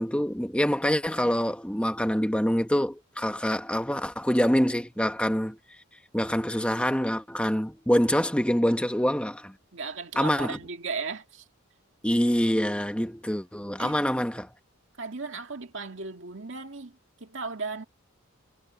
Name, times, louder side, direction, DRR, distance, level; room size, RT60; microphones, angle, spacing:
voice 1, 0.0-5.6 6.1-9.5 10.1-10.6 12.0-14.5, equal, 5° left, 1.5 m, -25 dB
voice 2, 9.7-11.4 13.8-14.0 15.0-17.8, right 4 dB, 60° right, 2.3 m, -36 dB
head